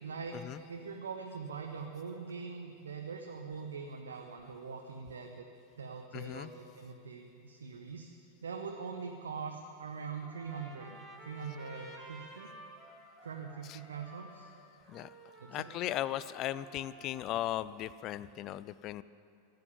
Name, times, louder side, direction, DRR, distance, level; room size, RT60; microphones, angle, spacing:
voice 1, 0.0-0.4 0.7-5.4 5.8-8.1 8.4-11.0 11.2-12.5 13.2-14.5 15.4-15.7, right 5 dB, 70° right, 3 dB, 0.9 m, -43 dB
voice 2, 6.1-6.5 13.7-13.8 14.9-15.1 15.5-19.0, left 13 dB, 35° left, 17 dB, 0.4 m, -37 dB
Trumpet, 10.2-17.5, right 2 dB, 5° left, 2.1 m, -53 dB
15.0 x 7.8 x 8.8 m, 2.5 s
figure-of-eight pair, 90°, 0 cm